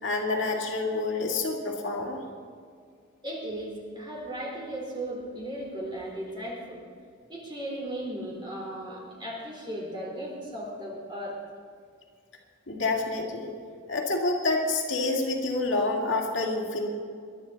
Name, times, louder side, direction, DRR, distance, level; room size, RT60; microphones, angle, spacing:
voice 1, 0.0-2.2 12.7-13.5 13.9-16.9, left 2 dB, 70° left, 0 dB, 2.1 m, -28 dB
voice 2, 3.2-6.8 7.3-11.4, right 1 dB, 25° right, -3 dB, 3.9 m, -36 dB
22.5 x 11.5 x 4.0 m, 2.1 s
head